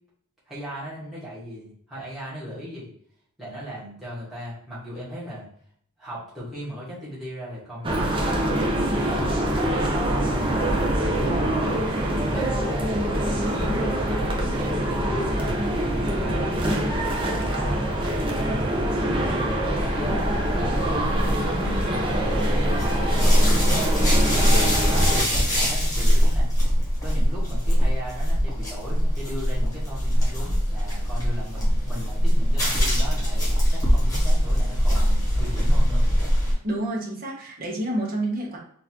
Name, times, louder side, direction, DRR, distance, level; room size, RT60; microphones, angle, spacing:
voice 1, 0.5-2.9 3.4-5.5 6.0-11.9 12.3-18.7 19.0-23.3 24.2-26.5 27.0-36.1, equal, ahead, -10 dB, 1.3 m, -37 dB
sound 1, 7.8-25.2, right 1 dB, 25° right, 0.6 m, -24 dB
sound 2, 19.8-36.5, equal, 15° left, 1.3 m, -22 dB
voice 2, 36.6-38.6, right 1 dB, 40° right, -2 dB, 1.0 m, -28 dB
3.9 x 2.5 x 2.9 m, 0.63 s
head